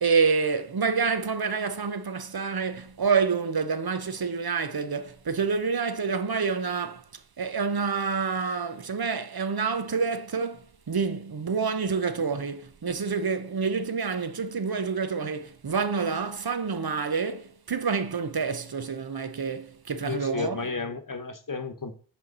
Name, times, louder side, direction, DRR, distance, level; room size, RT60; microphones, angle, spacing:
voice 1, 0.0-7.0 7.4-20.7, right 5 dB, 60° right, 0.7 m, -28 dB
voice 2, 20.1-21.9, left 4 dB, 50° left, 1.0 m, -32 dB
6.2 x 4.5 x 5.4 m
wide cardioid pair, 40°, 42 cm